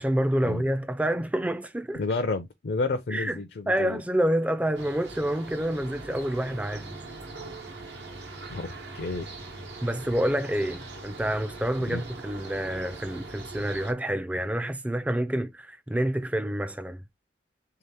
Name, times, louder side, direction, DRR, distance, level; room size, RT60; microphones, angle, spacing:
voice 1, 0.0-2.1 3.1-3.4 3.7-7.0 9.8-17.0, right 1 dB, 10° right, 0.3 m, -28 dB
voice 2, 2.0-4.0 8.5-9.3 11.9-12.0, left 3 dB, 60° left, 0.4 m, -30 dB
sound 1, 4.7-13.9, right 2 dB, 80° right, 1.0 m, -41 dB
3.6 x 2.9 x 3.3 m
head